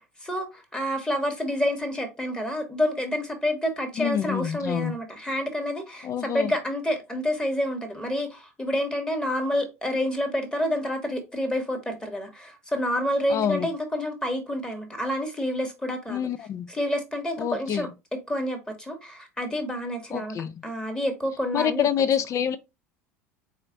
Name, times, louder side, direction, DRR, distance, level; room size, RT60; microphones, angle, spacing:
voice 1, 0.2-16.3 16.7-17.9 18.3-20.4 20.6-21.9, left 1 dB, 10° left, 1.6 m, -28 dB
voice 2, 4.0-5.0 6.0-6.5 13.3-13.7 16.1-16.7 17.4-17.9 20.1-20.5 21.5-22.6, left 9 dB, 40° left, 0.6 m, -27 dB
4.2 x 3.0 x 3.9 m
hypercardioid pair, 80°, 8 cm